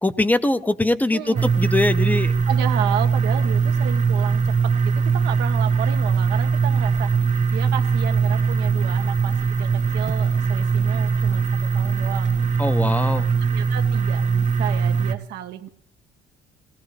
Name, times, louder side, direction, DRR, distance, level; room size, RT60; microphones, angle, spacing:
voice 1, 0.0-2.3 12.6-13.3, left 2 dB, 10° left, 12 dB, 0.7 m, -22 dB
voice 2, 1.1-1.5 2.5-12.8 13.5-15.7, right 11 dB, 80° right, 7 dB, 1.2 m, -32 dB
sound 1, 1.3-15.1, right 5 dB, 45° right, 1.2 m, -21 dB
21.0 x 16.0 x 3.3 m, 0.65 s
cardioid pair, 110°, 17 cm